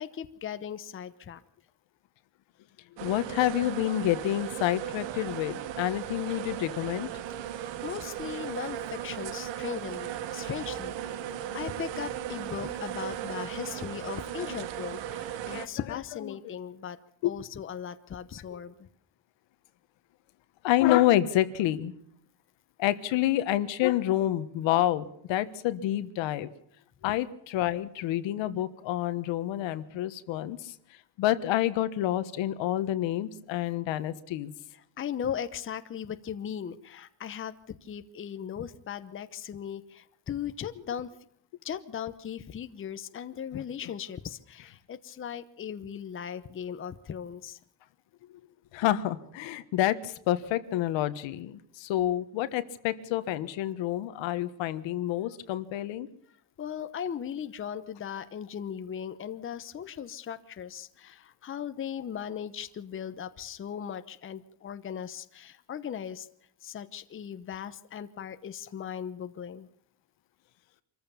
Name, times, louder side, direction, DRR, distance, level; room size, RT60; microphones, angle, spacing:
voice 1, 0.0-1.4 7.8-10.9 11.5-17.0 17.2-18.9 35.0-41.1 41.6-47.6 56.6-66.3 66.6-69.7, left 8 dB, 25° left, 10 dB, 0.9 m, -38 dB
voice 2, 3.0-7.1 11.2-11.6 14.4-14.6 15.5-15.7 16.3-16.5 17.2-17.3 18.5-18.6 20.6-21.9 22.8-26.5 27.0-30.7 31.2-34.5 43.5-43.9 48.7-56.1, left 13 dB, 75° left, 12 dB, 1.5 m, -28 dB
sound 1, 3.0-15.7, right 11 dB, 70° right, 1.4 m, -37 dB
25.5 x 14.5 x 7.1 m, 0.68 s
cardioid pair, 145°, 45 cm